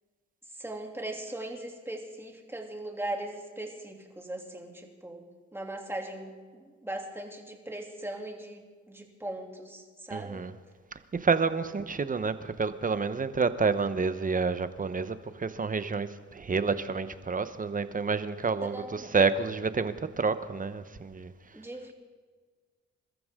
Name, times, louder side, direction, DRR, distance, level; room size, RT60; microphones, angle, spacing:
voice 1, 0.5-5.2 5.5-10.5 11.6-11.7 18.7-19.1 21.5-21.9, right 1 dB, 10° right, 1 dB, 2.9 m, -39 dB
voice 2, 10.1-10.5 11.2-18.8 19.1-21.3, right 4 dB, 25° right, 12 dB, 1.0 m, -29 dB
27.0 x 14.0 x 3.8 m, 1.5 s
cardioid pair, 90°, 30 cm